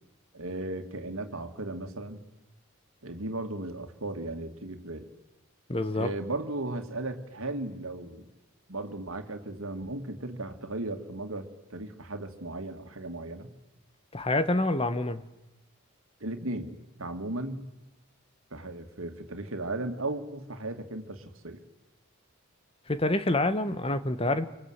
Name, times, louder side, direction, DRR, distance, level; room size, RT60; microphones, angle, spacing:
voice 1, 0.3-2.2 3.0-5.1 5.9-8.3 8.7-13.5 16.2-17.6 18.5-21.6, right 2 dB, 75° right, 6 dB, 2.5 m, -36 dB
voice 2, 5.7-6.1 14.1-15.2 22.9-24.5, left 2 dB, 25° left, 11 dB, 1.3 m, -27 dB
26.5 x 25.0 x 8.2 m, 0.97 s
head